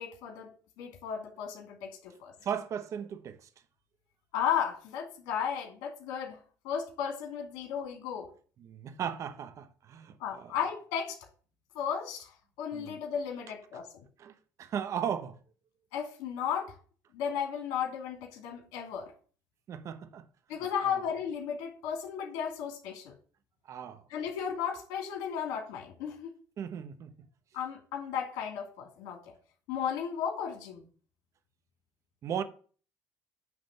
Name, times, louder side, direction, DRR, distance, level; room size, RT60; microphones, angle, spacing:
voice 1, 0.0-2.3 4.3-8.3 10.2-11.2 11.7-12.3 12.6-14.1 15.9-16.7 17.1-19.1 20.5-23.1 24.1-26.3 27.5-29.3 29.7-30.8, left 8 dB, 85° left, 2.6 m, -34 dB
voice 2, 2.4-3.5 8.6-10.5 12.7-12.9 14.2-15.4 19.7-20.2 20.8-21.0 23.7-24.0 26.6-27.1 32.2-32.4, right 8 dB, 50° right, 1.0 m, -36 dB
9.7 x 3.5 x 6.6 m
cardioid pair, 110°, 7 cm